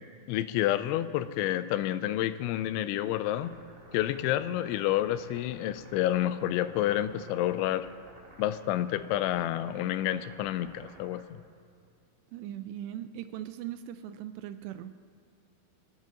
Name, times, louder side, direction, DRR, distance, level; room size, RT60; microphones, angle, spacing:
voice 1, 0.3-3.5 3.9-7.9 8.4-11.4, left 13 dB, 90° left, 13 dB, 3.0 m, -29 dB
sound 1, 3.3-11.2, right 2 dB, 55° right, 2.9 m, -54 dB
voice 2, 12.3-14.9, right 11 dB, 80° right, 11 dB, 2.6 m, -39 dB
27.0 x 10.5 x 3.8 m, 2.4 s
omnidirectional pair, 5.2 m